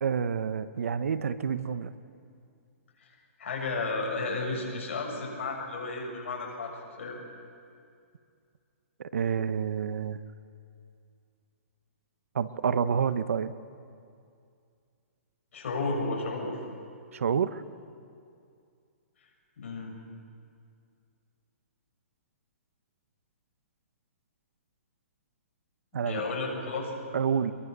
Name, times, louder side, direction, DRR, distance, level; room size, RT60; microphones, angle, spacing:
voice 1, 0.0-1.9 9.0-10.2 12.3-13.5 17.1-17.6 25.9-26.2 27.1-27.5, right 7 dB, 75° right, 13 dB, 1.1 m, -28 dB
voice 2, 3.4-7.2 15.5-16.6 19.6-20.0 25.9-26.9, left 3 dB, 65° left, 0 dB, 7.2 m, -33 dB
24.0 x 22.5 x 6.8 m, 2.3 s
hypercardioid pair, 155°, 8 cm